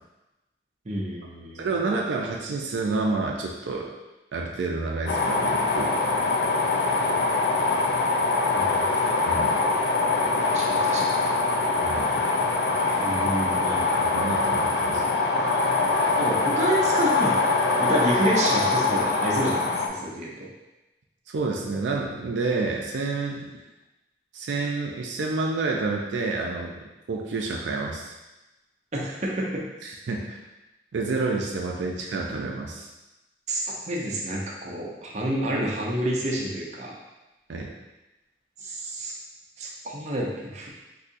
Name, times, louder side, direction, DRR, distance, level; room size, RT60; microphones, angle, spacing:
voice 1, 0.9-1.7 8.5-8.9 10.5-11.0 13.0-13.8 16.2-20.5 28.9-29.6 33.5-36.9 38.6-39.1 39.6-40.7, right 1 dB, 40° right, -3 dB, 0.6 m, -29 dB
voice 2, 1.6-3.9 4.3-6.0 9.2-9.6 11.8-12.2 13.8-15.2 21.3-23.5 24.3-28.1 29.8-30.4 30.9-32.9 37.5-37.7, right 3 dB, 85° right, 0 dB, 0.4 m, -29 dB
sound 1, 5.1-19.9, left 3 dB, 65° left, 0.4 m, -23 dB
4.0 x 2.7 x 2.5 m, 1.0 s
head